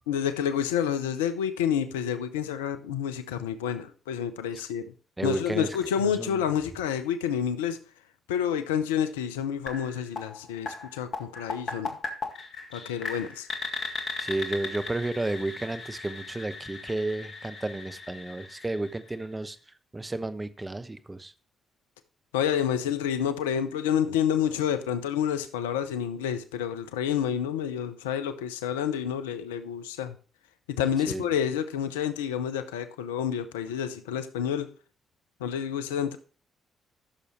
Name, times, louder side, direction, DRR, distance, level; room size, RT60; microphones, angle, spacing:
voice 1, 0.1-4.9 5.2-7.8 8.3-12.0 12.7-13.5 22.3-30.2 30.8-34.7 35.4-36.2, left 8 dB, 85° left, 0.6 m, -29 dB
voice 2, 5.2-5.8 6.2-6.4 14.2-19.6 19.9-21.3 31.1-31.3, right 2 dB, 20° right, 0.9 m, -32 dB
sound 1, 9.7-19.5, left 4 dB, 55° left, 1.9 m, -38 dB
14.0 x 6.7 x 3.1 m
hypercardioid pair, 40°, 0 cm